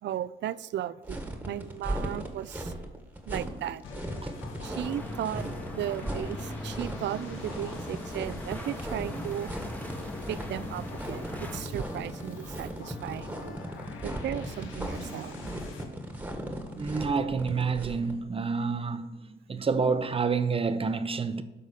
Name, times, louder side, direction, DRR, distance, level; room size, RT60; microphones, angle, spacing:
voice 1, 0.0-2.7 3.3-3.8 4.6-9.5 10.3-13.6 14.0-15.4, right 12 dB, 65° right, 0.4 m, -36 dB
sound 1, 1.0-18.1, right 1 dB, 10° right, 1.5 m, -38 dB
sound 2, 3.8-15.8, left 3 dB, 80° left, 1.4 m, -44 dB
sound 3, 4.6-11.7, left 1 dB, 10° left, 1.2 m, -40 dB
voice 2, 16.8-21.4, right 5 dB, 30° right, 0.7 m, -29 dB
12.0 x 4.1 x 6.5 m
cardioid pair, 90°, 20 cm